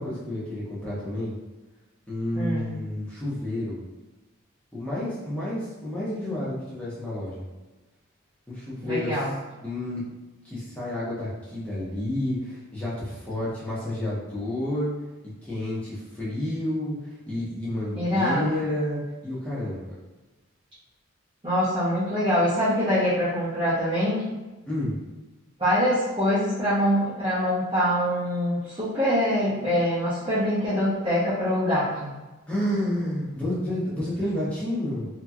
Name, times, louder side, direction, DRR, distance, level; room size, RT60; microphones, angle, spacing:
voice 1, 0.0-1.3 2.1-3.8 4.7-7.4 8.5-9.2 9.6-10.0 10.4-14.9 15.4-19.9 24.7-24.9 32.5-35.1, left 1 dB, 5° left, -9 dB, 1.0 m, -30 dB
voice 2, 2.4-2.7 8.8-9.4 18.0-18.6 21.4-24.2 25.6-32.1, equal, 25° right, -14 dB, 0.9 m, -24 dB
2.9 x 2.8 x 2.4 m, 1.1 s
head